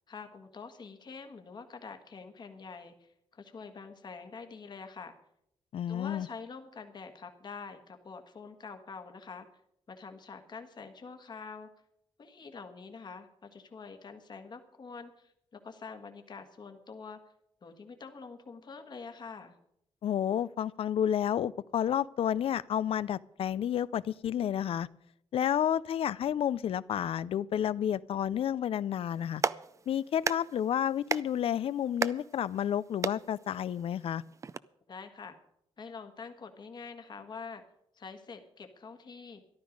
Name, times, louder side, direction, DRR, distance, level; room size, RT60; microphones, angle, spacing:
voice 1, 0.1-5.1 5.9-9.5 9.9-11.7 12.2-17.2 17.6-19.6 34.9-35.3 35.8-37.6 37.9-39.4, left 5 dB, 45° left, 6 dB, 1.6 m, -46 dB
voice 2, 5.7-6.3 20.0-24.9 25.3-29.4 29.9-34.2, left 9 dB, 70° left, 19 dB, 0.4 m, -30 dB
Clapping, 29.1-34.6, right 5 dB, 30° right, 0.4 m, -37 dB
14.0 x 12.0 x 5.2 m, 0.75 s
wide cardioid pair, 120°, 10 cm